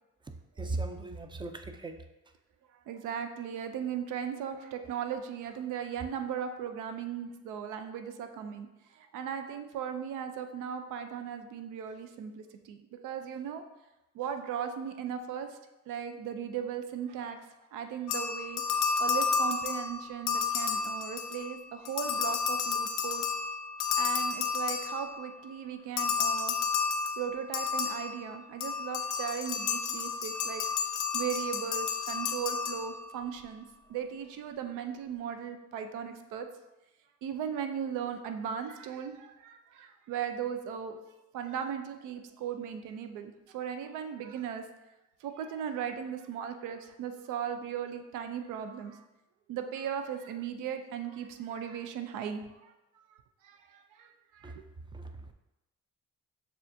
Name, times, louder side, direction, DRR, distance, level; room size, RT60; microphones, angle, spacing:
voice 1, 0.2-2.0 54.4-54.6 54.9-55.3, right 2 dB, 15° right, 7 dB, 0.3 m, -38 dB
voice 2, 2.9-8.7 9.1-13.6 14.1-15.6 15.9-17.4 17.7-18.6 19.0-23.3 24.0-26.6 27.2-30.6 31.1-33.6 33.9-36.5 37.2-41.0 41.3-44.6 45.2-49.0 49.5-53.1 53.4-54.6, right 8 dB, 90° right, 7 dB, 0.5 m, -37 dB
sound 1, 18.1-21.5 21.8-25.3 26.0-33.2, left 5 dB, 90° left, 0.5 m, -31 dB
6.7 x 2.5 x 2.6 m, 0.98 s
cardioid pair, 90°, 30 cm